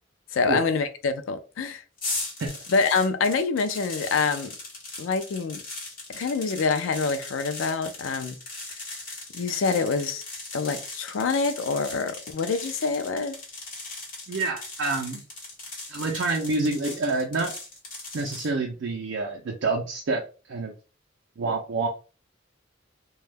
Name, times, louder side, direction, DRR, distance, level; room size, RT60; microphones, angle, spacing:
voice 1, 0.3-1.8 2.7-4.5 5.0-5.6 6.1-8.4 9.3-10.2 10.5-13.4, left 4 dB, 85° left, 0.4 m, -26 dB
sound 1, 2.0-18.5, left 2 dB, 45° left, 1.1 m, -38 dB
voice 2, 14.3-15.2 15.9-17.5 18.1-20.2 20.5-20.7 21.4-21.9, right 3 dB, 65° right, 0.5 m, -27 dB
2.2 x 2.1 x 3.3 m
head